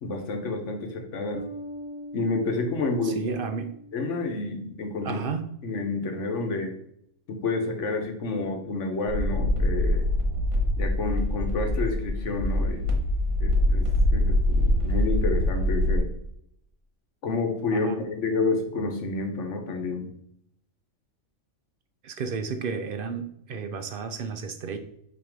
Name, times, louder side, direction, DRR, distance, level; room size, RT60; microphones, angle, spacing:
voice 1, 0.0-1.4 2.1-3.3 3.9-5.2 5.6-6.7 7.3-10.0 10.8-12.9 13.4-13.9 14.1-16.1 17.2-20.1, left 3 dB, 65° left, 4 dB, 1.2 m, -29 dB
Bass guitar, 1.3-4.8, equal, 10° right, 1.0 m, -42 dB
voice 2, 3.0-3.7 5.0-5.5 17.7-18.0 22.0-24.8, right 5 dB, 60° right, 8 dB, 0.6 m, -32 dB
sound 1, 9.1-16.0, left 1 dB, 80° right, 1.7 m, -24 dB
6.0 x 3.1 x 5.1 m, 0.72 s
omnidirectional pair, 1.4 m